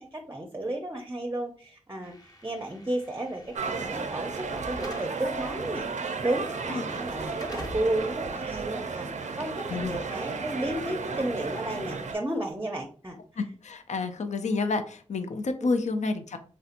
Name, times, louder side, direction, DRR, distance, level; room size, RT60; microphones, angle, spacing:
voice 1, 0.0-9.1 9.4-13.2 15.6-15.7, right 1 dB, 20° right, 3 dB, 0.5 m, -33 dB
Slam / Alarm, 2.0-10.1, left 1 dB, 30° left, 0.8 m, -47 dB
sound 1, 3.5-12.2, right 4 dB, 75° right, 0.4 m, -34 dB
voice 2, 13.4-16.4, left 3 dB, 75° left, 8 dB, 0.4 m, -29 dB
3.2 x 2.8 x 2.5 m, 0.43 s
cardioid pair, 40°, 12 cm